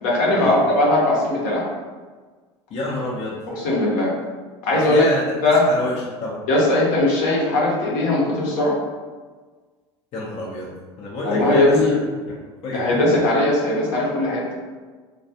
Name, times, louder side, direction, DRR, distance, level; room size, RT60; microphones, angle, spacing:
voice 1, 0.0-1.6 3.5-4.1 4.6-5.1 5.4-5.7 6.5-8.7 11.2-11.9 12.7-14.4, left 2 dB, 65° left, -4 dB, 0.9 m, -19 dB
voice 2, 2.7-3.4 4.7-5.3 5.7-6.4 10.1-10.7 11.0-12.0 12.3-12.4 12.6-13.0, left 2 dB, 45° left, -5 dB, 0.6 m, -28 dB
2.3 x 2.3 x 2.7 m, 1.4 s
hypercardioid pair, 80°, 14 cm